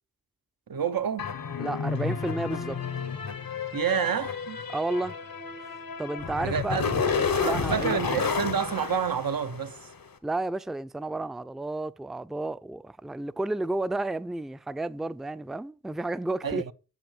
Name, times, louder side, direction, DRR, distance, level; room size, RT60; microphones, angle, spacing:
voice 1, 0.7-1.3 3.7-4.6 6.4-7.0 7.4-9.8 16.4-16.7, right 7 dB, 80° right, 0.8 m, -29 dB
sound 1, 1.2-9.9, left 5 dB, 80° left, 1.2 m, -31 dB
voice 2, 1.6-2.8 4.7-5.2 6.0-6.8 7.2-8.0 10.2-16.7, right 2 dB, ahead, 0.4 m, -32 dB
7.2 x 6.0 x 7.1 m
cardioid pair, 45°, 35 cm